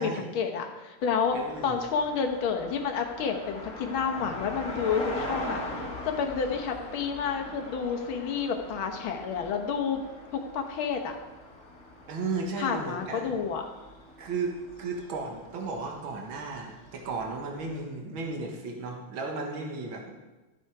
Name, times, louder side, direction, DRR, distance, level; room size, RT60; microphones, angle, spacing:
voice 1, 0.0-1.4 1.6-5.6 6.0-10.0 10.3-11.2 12.6-13.7, left 6 dB, 85° left, 4 dB, 2.0 m, -30 dB
sound 1, 1.0-17.8, left 1 dB, 40° left, 1.9 m, -42 dB
voice 2, 1.3-1.8 12.1-13.4 14.2-20.1, right 3 dB, 80° right, 2 dB, 2.2 m, -34 dB
13.5 x 7.4 x 4.7 m, 1.1 s
omnidirectional pair, 2.2 m